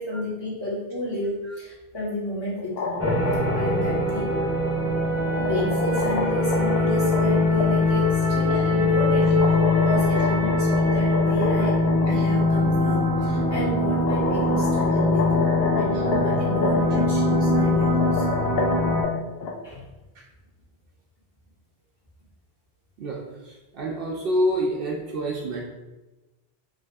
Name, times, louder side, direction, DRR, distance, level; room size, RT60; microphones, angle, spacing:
voice 1, 0.0-3.0 3.5-4.3 5.4-9.4 9.8-15.4 15.7-18.2 19.6-19.9, left 1 dB, 25° left, -8 dB, 1.6 m, -31 dB
sound 1, 2.5-3.7 4.8-7.7 9.3-12.1 12.4-12.5 13.5-13.6 14.1-17.0 17.8-19.5, left 4 dB, 70° left, 0.9 m, -29 dB
sound 2, 3.0-19.0, left 2 dB, 15° right, 0.7 m, -22 dB
voice 2, 23.0-25.7, equal, 65° right, -1 dB, 0.7 m, -27 dB
5.3 x 2.8 x 2.3 m, 1.1 s
omnidirectional pair, 1.1 m